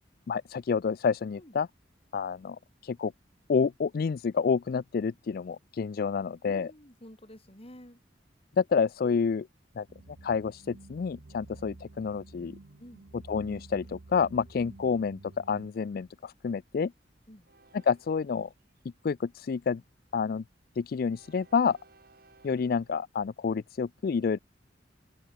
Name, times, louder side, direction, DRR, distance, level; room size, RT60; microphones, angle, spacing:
voice 1, 0.3-1.7 2.1-3.1 3.5-6.7 8.6-9.5 9.8-9.9 10.2-12.6 13.3-16.9 17.9-18.5 19.0-19.8 20.1-20.4 20.8-21.8 22.4-24.4, left 5 dB, 55° left, 0.4 m, -29 dB
voice 2, 6.5-8.0 12.8-13.1 14.6-14.8 17.3-17.5, equal, 35° left, 5.7 m, -50 dB
sound 1, 9.9-15.7, right 2 dB, 75° right, 0.9 m, -51 dB
Train, 14.3-23.0, right 3 dB, 55° right, 5.7 m, -64 dB
head